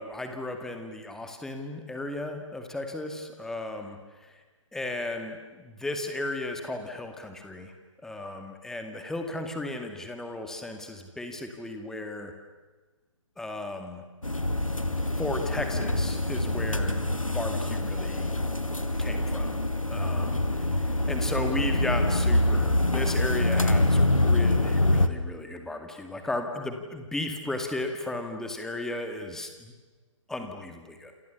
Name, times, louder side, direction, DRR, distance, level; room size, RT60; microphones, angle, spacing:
voice 1, 0.0-4.0 4.7-7.7 8.0-12.3 13.4-14.0 15.2-17.0 17.3-18.3 19.0-20.4 21.1-29.7 30.3-31.1, left 2 dB, 5° left, 5 dB, 2.1 m, -35 dB
sound 1, 14.2-25.1, left 1 dB, 85° left, 2.0 m, -25 dB
29.0 x 28.0 x 7.1 m, 1.3 s
figure-of-eight pair, 135°, 17 cm